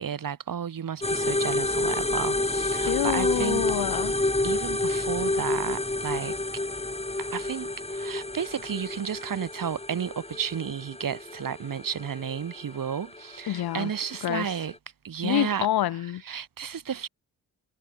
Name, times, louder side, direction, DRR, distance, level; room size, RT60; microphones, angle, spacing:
voice 1, 0.0-3.7 4.4-6.4 7.2-14.7 15.0-15.7 16.2-17.1, right 8 dB, 60° right, 3.1 m, -32 dB
sound 1, 1.0-14.8, left 2 dB, 15° left, 2.9 m, -29 dB
voice 2, 2.8-4.2 13.5-13.9 14.2-14.5 15.2-16.2, left 13 dB, 80° left, 1.3 m, -27 dB
supercardioid pair, 50°, 37 cm